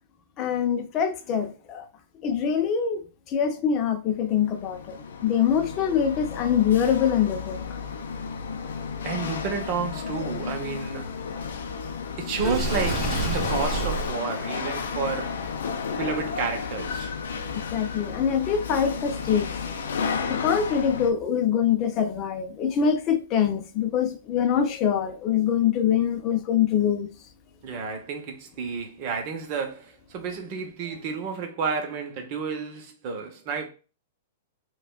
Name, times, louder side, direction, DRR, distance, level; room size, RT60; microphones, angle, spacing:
voice 1, 0.4-1.8 2.2-3.0 3.3-4.9 5.2-7.6 17.5-19.5 20.3-27.1, left 8 dB, 30° left, 0.6 m, -24 dB
Chatter / Hiss / Rattle, 4.2-21.1, left 5 dB, 85° left, 0.6 m, -32 dB
voice 2, 9.0-11.1 12.2-15.4 15.9-17.1 27.6-33.7, right 5 dB, 40° right, 0.9 m, -31 dB
Water / Sink (filling or washing), 12.3-14.1, right 3 dB, 10° right, 1.5 m, -28 dB
4.8 x 2.3 x 2.3 m
hypercardioid pair, 155°, 0 cm